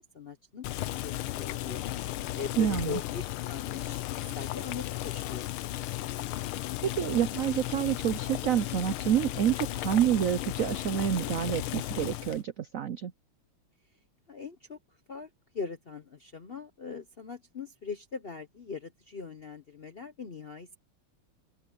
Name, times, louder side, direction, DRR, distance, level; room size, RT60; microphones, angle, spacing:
voice 1, 0.0-1.8 2.3-5.5 14.3-20.8, left 5 dB, 55° left, 0.6 m, -41 dB
Boiling, 0.6-12.4, left 15 dB, 90° left, 1.6 m, -35 dB
voice 2, 2.6-3.0 6.9-13.1, right 10 dB, 85° right, 0.7 m, -28 dB
open air
omnidirectional pair, 2.3 m